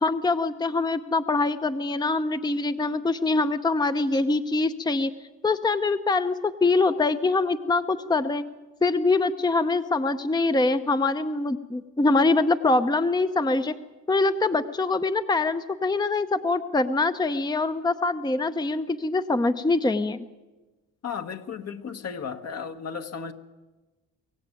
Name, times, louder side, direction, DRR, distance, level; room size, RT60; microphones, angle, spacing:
voice 1, 0.0-5.1 5.4-8.4 8.8-13.7 14.1-20.2, left 3 dB, 15° left, 0.8 m, -24 dB
voice 2, 21.0-23.3, left 6 dB, 55° left, 1.7 m, -34 dB
24.0 x 16.5 x 9.3 m
cardioid pair, 90°, 30 cm